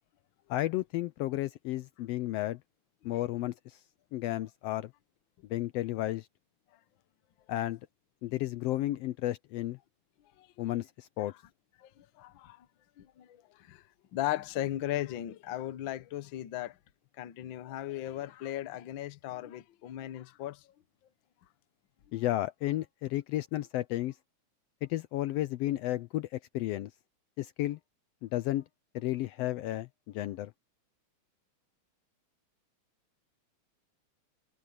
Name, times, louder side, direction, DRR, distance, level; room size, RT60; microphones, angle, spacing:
voice 1, 0.5-2.6 3.0-3.8 4.1-4.9 5.5-6.3 7.5-7.8 8.2-9.8 10.6-11.3 22.1-24.1 24.8-26.9 27.4-27.8 28.2-28.6 28.9-29.9 30.1-30.5, left 15 dB, 90° left, 1.4 m, -32 dB
voice 2, 11.8-12.7 13.0-13.8 14.1-16.8 17.2-20.7, left 13 dB, 70° left, 1.1 m, -37 dB
omnidirectional pair, 3.5 m